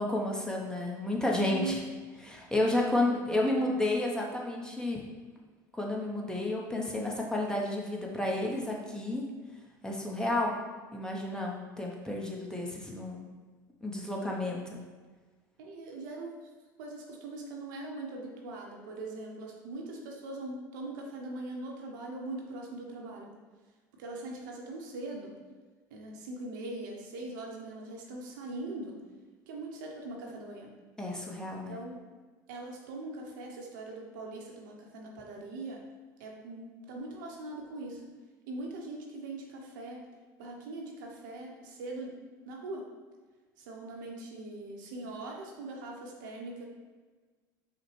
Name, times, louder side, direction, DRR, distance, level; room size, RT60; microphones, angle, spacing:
voice 1, 0.0-1.8 2.2-5.0 5.7-9.3 9.8-10.6 10.9-13.3 13.8-14.8 31.0-31.8, left 1 dB, 5° left, -1 dB, 0.8 m, -31 dB
voice 2, 1.4-1.8 2.7-2.8 15.6-16.3 16.8-23.3 24.0-25.3 25.9-29.0 29.5-30.8 31.7-32.0 32.5-35.9 36.2-38.1 38.5-40.0 40.4-42.8 43.6-46.6, right 2 dB, 75° right, -1 dB, 0.8 m, -41 dB
5.7 x 2.1 x 3.1 m, 1.4 s
hypercardioid pair, 85°, 10 cm